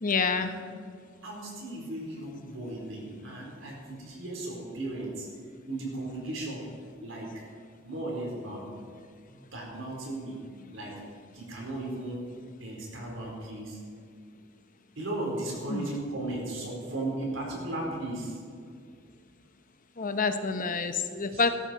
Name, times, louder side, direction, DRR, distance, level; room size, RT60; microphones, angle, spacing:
voice 1, 0.0-0.5 15.7-15.9 20.0-21.5, left 4 dB, 45° left, 9 dB, 0.9 m, -27 dB
voice 2, 1.2-5.3 5.7-6.7 7.0-7.4 7.8-8.7 9.3-10.4 10.7-11.0 11.3-13.8 15.0-18.4 21.3-21.5, right 2 dB, 75° right, -2 dB, 4.5 m, -36 dB
17.0 x 13.0 x 4.6 m, 2.2 s
head